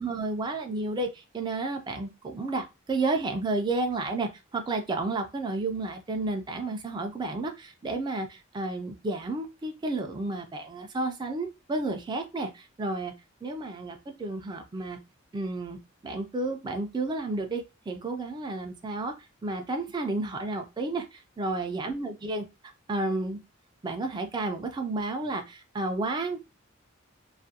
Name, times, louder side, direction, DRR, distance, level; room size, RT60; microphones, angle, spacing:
voice 1, 0.0-13.1 13.4-15.0 15.3-15.8 16.0-19.1 19.4-22.4 22.9-23.4 23.8-26.5, right 2 dB, 20° right, 5 dB, 0.3 m, -31 dB
2.4 x 2.1 x 2.7 m, 0.26 s
head